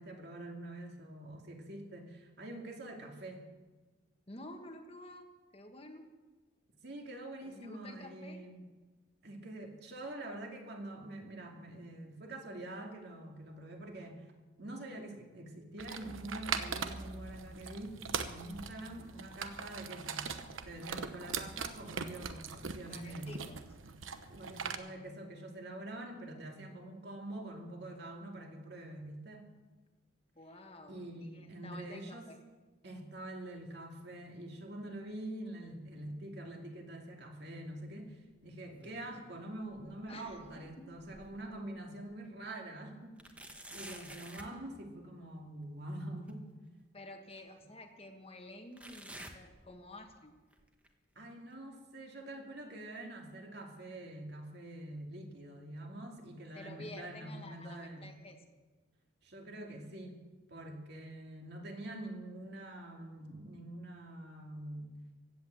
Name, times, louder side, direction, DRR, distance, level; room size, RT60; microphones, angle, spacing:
voice 1, 0.0-3.5 6.8-8.7 9.2-14.3 14.6-20.3 20.6-23.4 24.3-29.5 30.9-32.3 32.8-43.2 43.7-46.4 51.2-58.1 59.2-60.2 60.5-65.0, right 1 dB, 55° right, 2 dB, 2.5 m, -45 dB
voice 2, 4.3-6.0 7.4-8.4 22.9-23.6 30.4-32.4 40.1-40.9 46.9-50.4 56.5-58.4, left 1 dB, 30° left, 5 dB, 1.4 m, -51 dB
sound 1, 15.8-24.7, right 6 dB, 85° right, 1.0 m, -41 dB
sound 2, 38.4-39.3 39.7-41.6 42.1-42.2 43.2-44.6 46.3-46.4 47.3-47.4 48.8-50.2 50.5-50.9 51.5-51.6 52.5-52.6, right 1 dB, 5° right, 1.2 m, -51 dB
16.0 x 10.5 x 7.7 m, 1.3 s
head